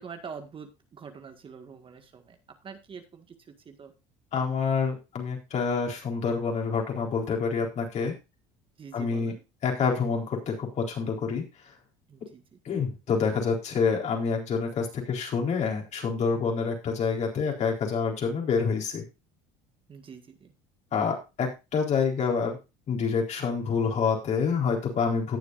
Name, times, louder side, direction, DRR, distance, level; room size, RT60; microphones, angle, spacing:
voice 1, 0.0-2.4 2.6-3.4 3.6-3.9 4.4-4.6 8.8-9.4 12.1-12.4 19.9-20.5, right 6 dB, 35° right, 6 dB, 1.8 m, -45 dB
voice 2, 4.3-8.1 8.9-9.3 9.6-11.4 12.6-19.0 20.9-22.6 22.9-25.4, left 5 dB, 50° left, 1 dB, 4.1 m, -27 dB
18.0 x 7.0 x 2.6 m, 0.26 s
supercardioid pair, 90°, 16 cm